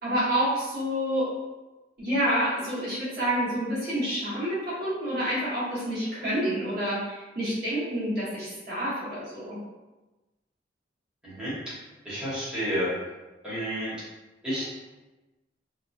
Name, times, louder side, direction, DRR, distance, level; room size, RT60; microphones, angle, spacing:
voice 1, 0.0-1.3 2.0-9.6, equal, 55° right, -9 dB, 1.2 m, -28 dB
voice 2, 11.2-11.7 12.0-12.9 13.4-13.9 14.4-14.7, equal, 5° right, -12 dB, 1.1 m, -30 dB
2.9 x 2.1 x 2.4 m, 1.1 s
head